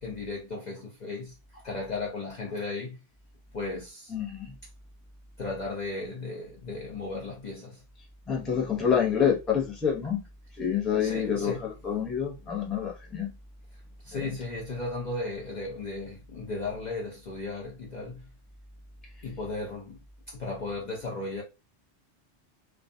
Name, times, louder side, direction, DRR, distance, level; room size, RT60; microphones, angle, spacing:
voice 1, 0.0-3.0 3.5-4.1 5.4-7.8 11.0-11.6 14.0-18.2 19.2-20.0 20.3-21.4, left 3 dB, 50° left, 0.5 m, -35 dB
voice 2, 4.1-4.5 8.3-10.2 10.5-13.3 14.1-14.4, left 8 dB, ahead, 0.4 m, -27 dB
2.3 x 2.3 x 2.6 m
omnidirectional pair, 1.2 m